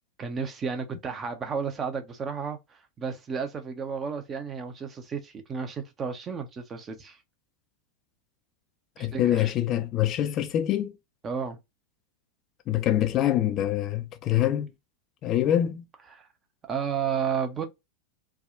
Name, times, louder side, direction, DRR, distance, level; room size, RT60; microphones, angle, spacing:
voice 1, 0.2-7.2 9.0-9.5 11.2-11.6 16.1-16.3 16.7-17.6, right 6 dB, 25° right, 0.7 m, -32 dB
voice 2, 9.0-10.9 12.7-14.7 15.2-15.8, left 12 dB, 35° left, 0.4 m, -25 dB
3.4 x 2.3 x 2.4 m
figure-of-eight pair, 90°, 0 cm